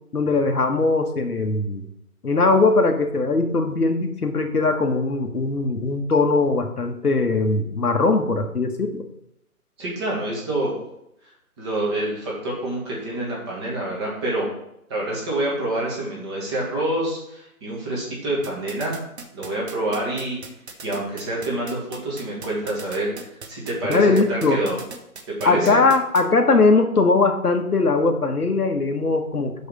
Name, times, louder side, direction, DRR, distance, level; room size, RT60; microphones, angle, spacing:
voice 1, 0.1-1.8 2.2-9.0 23.9-24.6 25.4-29.7, left 3 dB, 85° left, 4 dB, 1.4 m, -20 dB
voice 2, 9.8-10.7 11.6-14.5 14.9-19.0 19.3-20.4 20.8-23.1 23.5-24.8 25.3-25.8, right 1 dB, 20° right, -4 dB, 1.9 m, -27 dB
sound 1, 18.4-26.2, right 4 dB, 45° right, 1.0 m, -38 dB
5.5 x 5.5 x 6.6 m, 0.80 s
figure-of-eight pair, 155°, 45 cm